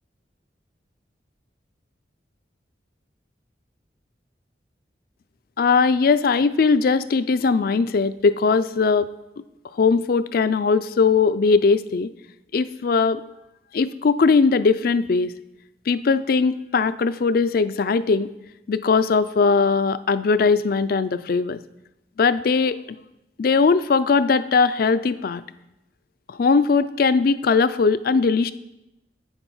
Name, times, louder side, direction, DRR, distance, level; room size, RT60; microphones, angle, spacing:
voice 1, 5.6-9.1 9.8-12.1 12.5-13.2 13.7-15.3 15.9-18.3 18.7-21.6 22.2-22.8 23.4-25.4 26.3-28.5, left 4 dB, 55° left, 14 dB, 0.4 m, -19 dB
8.1 x 7.1 x 5.5 m, 0.92 s
head